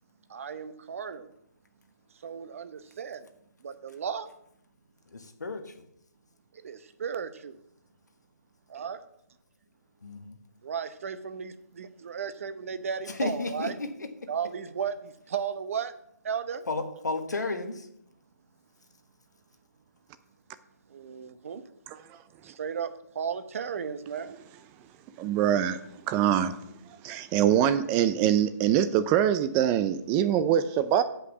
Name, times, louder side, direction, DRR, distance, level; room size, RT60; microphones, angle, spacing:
voice 1, 0.3-1.3 2.2-3.3 3.6-4.3 6.6-7.6 8.7-9.0 10.6-13.8 14.3-15.9 16.2-16.6 20.9-21.6 22.4-24.4, right 7 dB, 50° right, 11 dB, 0.9 m, -35 dB
voice 2, 5.1-5.6 10.0-10.3 13.1-13.7 16.7-17.9, left 3 dB, 85° left, 6 dB, 1.4 m, -32 dB
voice 3, 25.2-26.6 27.0-31.0, right 10 dB, 15° right, 14 dB, 0.4 m, -24 dB
7.8 x 5.6 x 7.2 m, 0.76 s
figure-of-eight pair, 145°, 9 cm